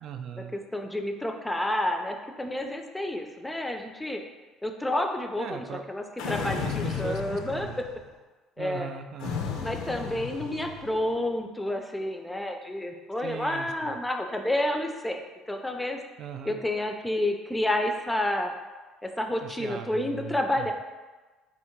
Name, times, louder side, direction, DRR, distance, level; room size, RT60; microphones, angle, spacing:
voice 1, 0.0-0.6 5.4-5.8 6.3-7.8 8.6-9.5 13.2-13.9 16.2-16.6 19.4-20.7, right 7 dB, 60° right, 7 dB, 0.4 m, -39 dB
voice 2, 0.5-4.2 4.6-7.7 8.6-8.9 9.6-15.2 15.5-16.0 16.4-18.5 19.0-20.7, left 1 dB, 10° left, 4 dB, 0.4 m, -30 dB
sound 1, 6.2-8.1 9.2-11.0, left 6 dB, 80° left, 0.5 m, -34 dB
3.6 x 2.5 x 4.4 m, 1.3 s
cardioid pair, 105°, 0 cm